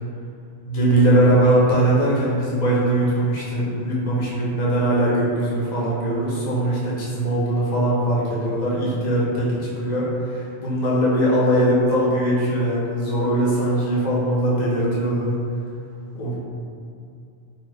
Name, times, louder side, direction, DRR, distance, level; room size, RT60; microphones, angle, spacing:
voice 1, 0.7-15.3 16.1-16.3, right 1 dB, 45° left, -7 dB, 0.6 m, -21 dB
2.8 x 2.2 x 3.2 m, 2.4 s
omnidirectional pair, 1.3 m